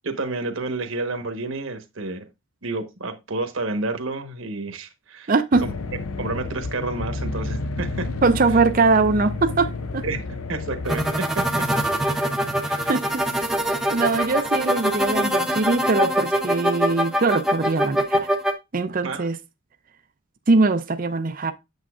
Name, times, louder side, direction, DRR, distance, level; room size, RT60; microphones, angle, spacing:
voice 1, 0.0-2.2 2.6-5.3 5.6-5.7 6.2-8.1 10.0-10.2 10.5-11.6 12.6-12.9 19.0-19.3, right 2 dB, 65° right, 1.2 m, -30 dB
voice 2, 5.3-5.6 8.2-10.0 12.9-13.2 13.9-18.3 18.7-19.4 20.5-21.5, right 3 dB, 40° right, 0.5 m, -21 dB
sound 1, 5.5-11.2, left 3 dB, 80° left, 0.6 m, -30 dB
sound 2, 10.9-18.5, equal, ahead, 0.7 m, -23 dB
8.2 x 7.3 x 2.4 m
head